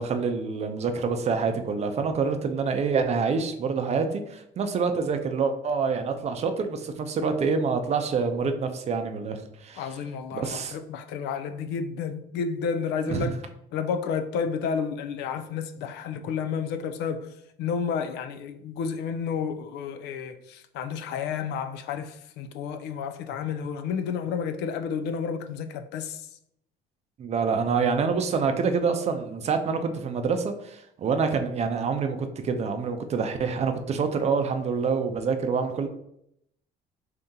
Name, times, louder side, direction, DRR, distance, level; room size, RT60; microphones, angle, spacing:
voice 1, 0.0-9.8 10.3-10.7 13.1-13.3 27.2-32.2 32.4-35.9, right 5 dB, 40° right, 0.5 m, -26 dB
voice 2, 9.8-13.3 13.7-26.3, left 6 dB, 80° left, 0.4 m, -31 dB
2.8 x 2.7 x 3.5 m
cardioid pair, 110°, 17 cm